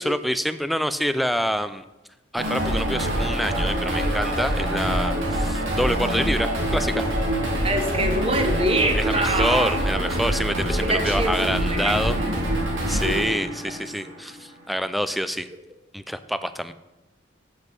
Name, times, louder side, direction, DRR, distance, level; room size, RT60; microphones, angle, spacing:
voice 1, 0.0-1.8 2.3-7.0 9.0-12.2 12.9-15.5 15.9-16.7, equal, ahead, 12 dB, 0.3 m, -26 dB
sound 1, 2.4-14.4, equal, 90° right, 2.7 m, -25 dB
voice 2, 7.6-9.8 10.8-11.4 11.7-12.3, right 1 dB, 30° right, 5 dB, 1.1 m, -25 dB
8.1 x 8.0 x 5.4 m, 1.0 s
head